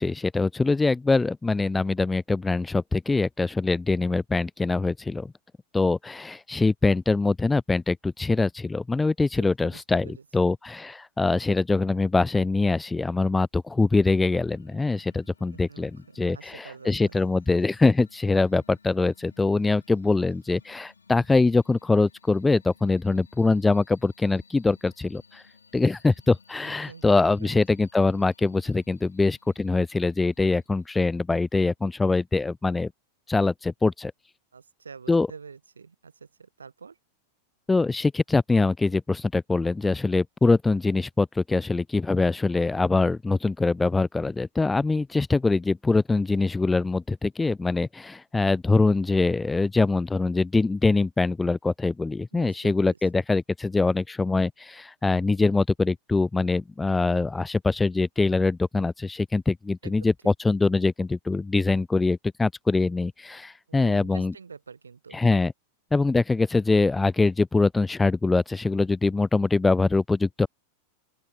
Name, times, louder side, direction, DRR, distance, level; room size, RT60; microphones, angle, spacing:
voice 1, 0.0-5.3 5.7-10.1 10.3-25.4 25.7-32.9 33.3-34.1 35.1-35.3 37.7-64.3 65.1-65.5 65.9-70.5, left 3 dB, 10° left, 0.3 m, -23 dB
voice 2, 9.4-10.5 15.5-17.1 26.6-27.6 34.5-37.0 52.3-53.0 59.8-60.1 63.7-65.2, right 5 dB, 75° right, 0.9 m, -46 dB
sound 1, 14.0-31.2, left 5 dB, 75° left, 2.3 m, -59 dB
open air
figure-of-eight pair, 90°, 0 cm